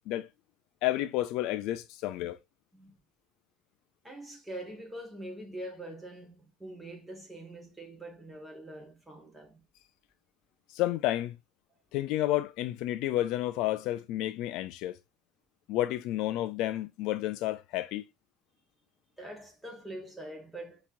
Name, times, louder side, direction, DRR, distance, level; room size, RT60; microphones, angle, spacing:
voice 1, 0.8-2.4 10.7-11.4 11.9-15.0 15.7-18.0, left 14 dB, 60° left, 0.3 m, -31 dB
voice 2, 4.0-9.6 19.2-20.8, right 1 dB, 5° right, 1.4 m, -44 dB
5.6 x 2.9 x 2.5 m
cardioid pair, 150°, 0 cm